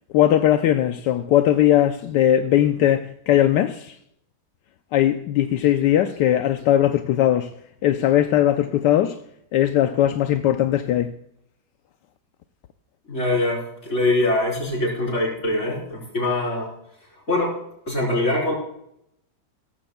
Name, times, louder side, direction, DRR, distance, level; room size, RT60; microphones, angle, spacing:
voice 1, 0.1-4.0 4.9-7.5 7.8-9.2 9.5-11.1, left 12 dB, 80° left, 1.2 m, -19 dB
voice 2, 13.1-16.7 17.3-17.6 17.9-18.5, left 2 dB, 40° left, 4.5 m, -23 dB
16.0 x 15.0 x 2.3 m
omnidirectional pair, 1.9 m